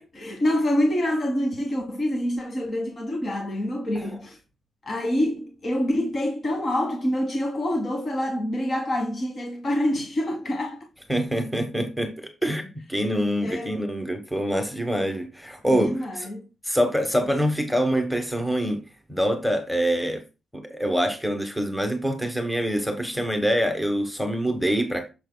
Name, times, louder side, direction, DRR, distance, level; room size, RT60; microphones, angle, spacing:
voice 1, 0.0-4.4 4.8-10.8 13.4-13.9 15.7-16.4, left 1 dB, 35° left, 1.3 m, -26 dB
voice 2, 11.1-16.3 16.6-18.8 19.1-20.2 20.5-25.1, equal, ahead, 1.1 m, -25 dB
9.0 x 7.0 x 2.2 m
wide cardioid pair, 160°, 0 cm